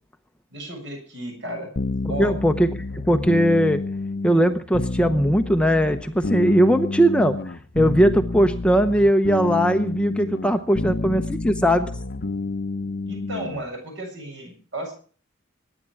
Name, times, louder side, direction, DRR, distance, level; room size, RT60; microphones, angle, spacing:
voice 1, 0.5-1.7 2.1-2.3 13.1-14.9, right 1 dB, 60° right, 2 dB, 7.4 m, -33 dB
sound 1, 1.8-13.6, left 3 dB, 50° left, 0.7 m, -29 dB
voice 2, 2.2-2.7 3.1-3.8 4.2-7.4 7.7-11.9, equal, 5° left, 7 dB, 0.7 m, -19 dB
22.0 x 10.0 x 4.7 m, 0.40 s
head